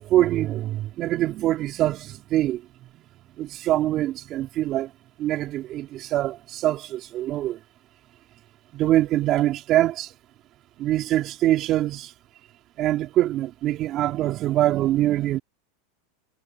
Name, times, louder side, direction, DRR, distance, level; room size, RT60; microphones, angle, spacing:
voice 1, 0.0-2.6 3.4-4.9 5.2-7.6 8.7-10.1 10.8-12.1 12.8-15.4, right 14 dB, 40° right, 3.6 m, -24 dB
supercardioid pair, 130°, 0 cm